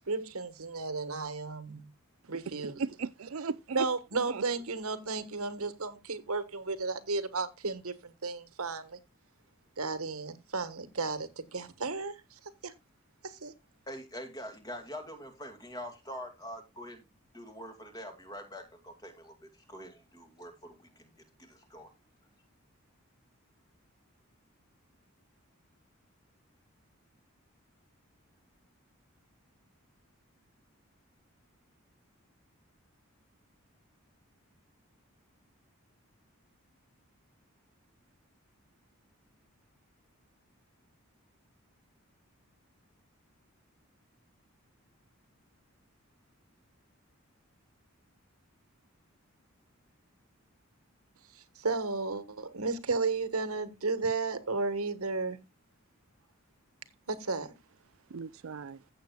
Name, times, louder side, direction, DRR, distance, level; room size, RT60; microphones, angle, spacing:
voice 1, 0.0-1.9 2.3-2.8 3.7-9.0 9.8-12.7 13.2-13.5 51.6-55.4 57.1-57.5, right 3 dB, 85° right, 1.4 m, -33 dB
voice 2, 2.6-3.9 4.3-4.4 58.1-58.8, right 5 dB, 70° right, 0.4 m, -37 dB
voice 3, 13.9-17.1 17.3-21.9, equal, 15° left, 2.3 m, -45 dB
15.5 x 7.8 x 2.3 m
head